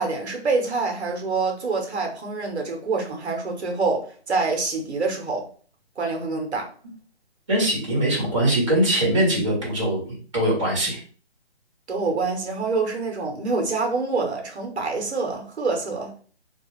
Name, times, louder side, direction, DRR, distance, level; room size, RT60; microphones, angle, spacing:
voice 1, 0.0-5.5 6.0-6.7 11.9-16.1, right 3 dB, 70° right, 0.8 m, -26 dB
voice 2, 7.5-11.0, right 1 dB, 30° right, 0.9 m, -22 dB
2.3 x 2.3 x 3.0 m
hypercardioid pair, 175°, 34 cm